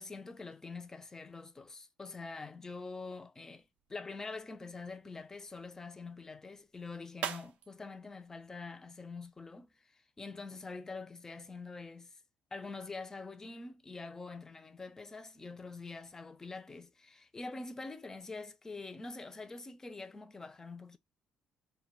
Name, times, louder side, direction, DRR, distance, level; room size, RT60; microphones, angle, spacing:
voice 1, 0.0-12.2 12.5-21.0, left 3 dB, 20° left, 0.4 m, -45 dB
sound 1, 3.6-9.5, right 9 dB, 70° right, 0.4 m, -48 dB
2.2 x 2.2 x 3.0 m
supercardioid pair, 80°, 2 cm